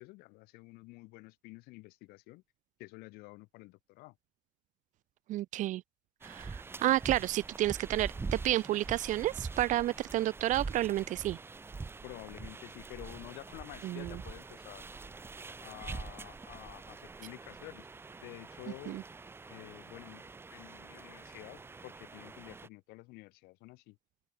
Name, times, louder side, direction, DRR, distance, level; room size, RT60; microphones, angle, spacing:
voice 1, 0.0-2.4 2.8-4.1 12.0-14.9 15.6-17.9 18.2-19.0 19.5-24.0, left 23 dB, 85° left, 7.4 m, -50 dB
voice 2, 5.3-5.8 6.2-11.4 13.8-14.1 18.9-19.0, right 15 dB, 55° right, 2.8 m, -31 dB
sound 1, 6.2-22.7, right 4 dB, 15° right, 7.0 m, -44 dB
open air
cardioid pair, 175°, 16 cm